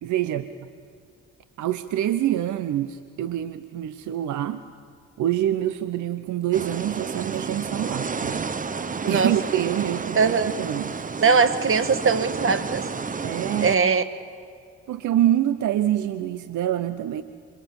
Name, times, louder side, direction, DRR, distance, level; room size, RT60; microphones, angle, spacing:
voice 1, 0.0-0.5 1.6-4.6 5.2-8.5 9.1-11.0 13.2-13.8 14.9-17.2, right 12 dB, 75° right, 12 dB, 1.0 m, -26 dB
sound 1, 6.5-13.8, right 5 dB, 25° right, 1.0 m, -31 dB
voice 2, 10.2-10.6 11.2-12.9 13.6-14.0, right 5 dB, 45° right, 12 dB, 1.7 m, -20 dB
26.5 x 24.5 x 7.2 m, 2.2 s
cardioid pair, 90°, 30 cm